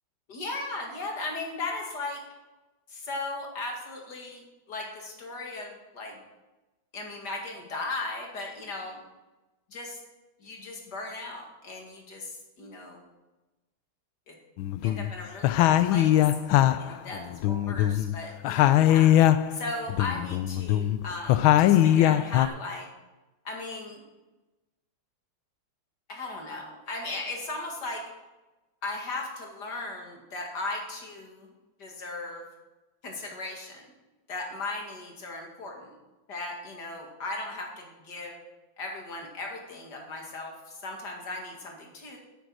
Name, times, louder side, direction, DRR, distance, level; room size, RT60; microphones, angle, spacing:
voice 1, 0.3-2.2 2.9-6.2 6.9-9.0 9.7-10.0 10.4-13.0 14.3-14.4 14.8-16.2 16.8-19.1 19.5-22.9 23.4-24.0 26.1-28.1 28.8-31.5 31.8-32.4 33.0-33.9 34.3-36.0 36.3-38.4 38.8-42.2, left 2 dB, 55° left, 1 dB, 2.6 m, -37 dB
sound 1, 14.6-15.1 15.4-18.2 18.4-19.6 19.9-22.5, left 12 dB, 85° left, 1.4 m, -21 dB
9.3 x 9.2 x 6.3 m, 1.1 s
omnidirectional pair, 2.2 m